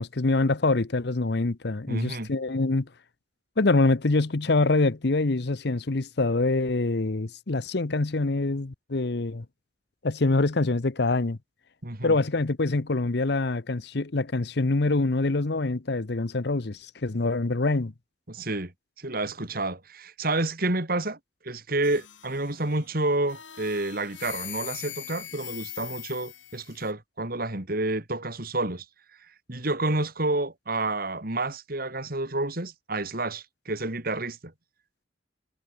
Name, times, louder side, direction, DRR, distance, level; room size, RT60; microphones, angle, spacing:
voice 1, 0.0-2.9 3.6-9.4 10.0-11.4 12.0-17.9, left 2 dB, 60° left, 0.9 m, -25 dB
voice 2, 1.9-2.3 11.8-12.2 18.3-18.7 19.0-21.2 21.4-28.8 29.5-34.5, right 2 dB, 50° right, 3.0 m, -29 dB
sound 1, 21.8-22.8 23.3-26.9, left 12 dB, 85° left, 4.2 m, -41 dB
head